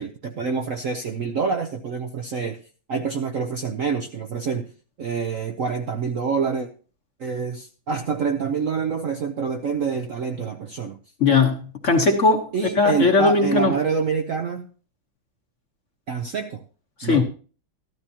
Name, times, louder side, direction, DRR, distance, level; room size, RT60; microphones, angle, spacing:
voice 1, 0.0-2.6 2.9-4.7 5.0-6.7 7.2-11.0 12.5-14.7 16.1-16.6 17.0-17.2, right 5 dB, 60° right, 6 dB, 0.9 m, -26 dB
voice 2, 11.2-12.5 12.8-13.7 17.0-17.2, left 4 dB, 45° left, 4 dB, 1.3 m, -19 dB
14.0 x 12.5 x 2.9 m, 0.38 s
omnidirectional pair, 2.2 m